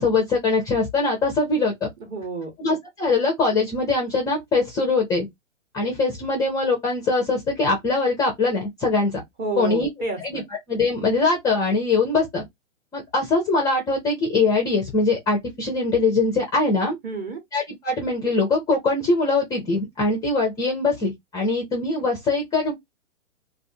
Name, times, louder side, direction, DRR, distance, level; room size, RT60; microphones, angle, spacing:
voice 1, 0.0-1.9 2.6-5.3 5.7-9.2 9.6-9.9 10.2-10.4 10.7-12.4 12.9-17.0 17.5-22.7, left 3 dB, 10° left, 0.4 m, -22 dB
voice 2, 2.1-2.5 9.4-10.4 17.0-17.4, right 3 dB, 25° right, 1.0 m, -30 dB
2.5 x 2.4 x 2.6 m
hypercardioid pair, 125°, 38 cm